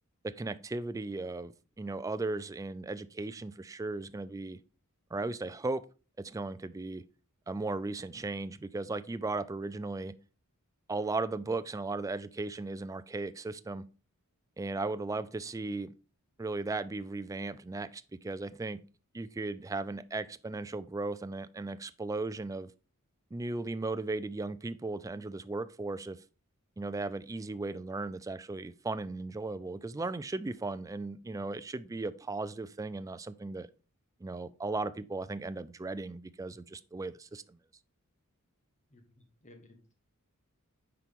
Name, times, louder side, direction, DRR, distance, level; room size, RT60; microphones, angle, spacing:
voice 1, 0.2-4.6 5.1-5.8 6.2-7.0 7.5-10.1 10.9-13.9 14.6-15.9 16.4-18.8 19.1-22.7 23.3-26.2 26.8-33.7 34.2-37.6, right 3 dB, 15° right, 0.3 m, -36 dB
voice 2, 38.9-39.9, left 1 dB, 35° left, 1.4 m, -58 dB
9.7 x 4.5 x 3.6 m
head